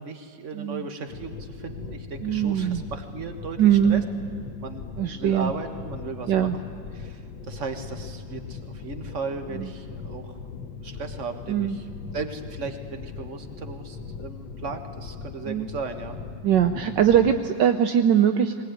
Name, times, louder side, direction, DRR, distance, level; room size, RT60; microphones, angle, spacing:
voice 1, 0.0-3.6 3.8-4.0 4.6-6.6 7.0-10.4 10.7-11.8 12.1-16.2, right 4 dB, 40° right, 6 dB, 1.7 m, -36 dB
voice 2, 0.5-0.8 2.2-2.8 3.6-4.0 5.0-5.5 6.3-6.6 9.5-9.7 11.5-11.8 15.5-15.7 16.4-18.6, right 9 dB, 70° right, 7 dB, 1.4 m, -21 dB
sound 1, 1.1-17.5, left 5 dB, 85° left, 1.7 m, -39 dB
21.0 x 20.5 x 9.3 m, 2.2 s
omnidirectional pair, 2.0 m